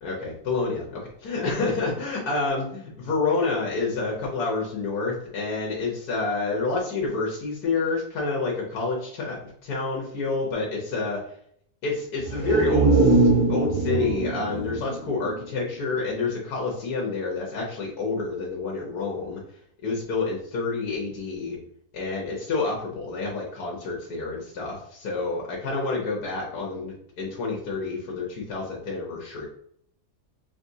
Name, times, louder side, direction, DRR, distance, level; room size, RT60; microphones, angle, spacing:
voice 1, 0.0-2.6 3.0-11.2 11.8-19.4 19.8-21.6 21.9-29.5, left 3 dB, 70° left, -3 dB, 1.5 m, -28 dB
sound 1, 12.2-15.9 16.3-16.4, right 2 dB, 25° right, 0.8 m, -22 dB
5.0 x 2.9 x 2.7 m, 0.65 s
omnidirectional pair, 1.7 m